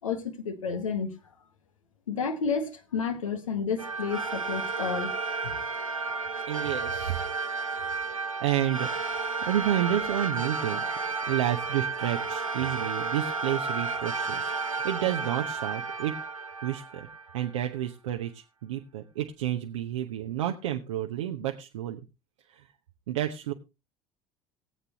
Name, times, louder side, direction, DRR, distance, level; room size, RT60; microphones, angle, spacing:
voice 1, 0.0-1.1 2.1-5.5, left 5 dB, 75° left, 1.4 m, -31 dB
sound 1, 3.8-17.6, right 4 dB, 90° right, 0.7 m, -32 dB
voice 2, 6.5-7.2 8.1-8.9 9.5-10.8 11.3-14.5 14.8-16.1 16.6-17.1 17.3-22.0 23.1-23.5, right 12 dB, 65° right, 0.9 m, -30 dB
18.5 x 8.3 x 2.9 m
figure-of-eight pair, 65°, 17 cm